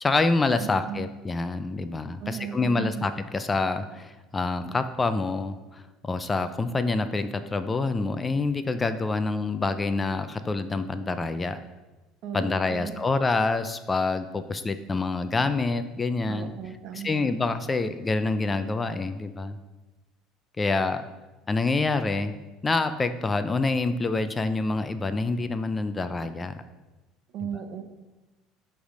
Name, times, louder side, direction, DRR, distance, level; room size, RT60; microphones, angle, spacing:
voice 1, 0.0-11.6 12.3-16.5 16.9-19.6 20.6-21.0 21.5-22.3 22.6-26.6, left 3 dB, 20° left, 10 dB, 0.4 m, -27 dB
voice 2, 0.6-1.1 2.2-3.1 12.2-13.0 16.3-17.3 27.3-27.8, right 8 dB, 55° right, 7 dB, 0.8 m, -36 dB
7.9 x 3.4 x 5.0 m, 1.1 s
supercardioid pair, 110°, 0 cm